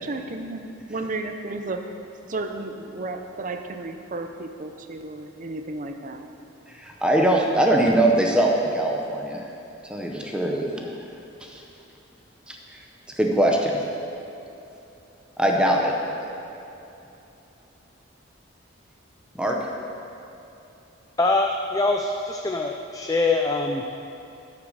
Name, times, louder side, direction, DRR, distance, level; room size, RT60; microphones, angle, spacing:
voice 1, 0.0-1.8 2.3-6.2, right 2 dB, 40° right, 6 dB, 0.6 m, -33 dB
voice 2, 6.7-9.4 9.9-10.9 11.4-11.6 12.5-12.6 13.2-13.8 15.4-16.3 19.4-19.6, right 1 dB, 5° right, 0 dB, 0.8 m, -22 dB
voice 3, 21.2-23.8, left 3 dB, 15° left, 2 dB, 0.4 m, -23 dB
12.0 x 6.1 x 6.5 m, 2.9 s
head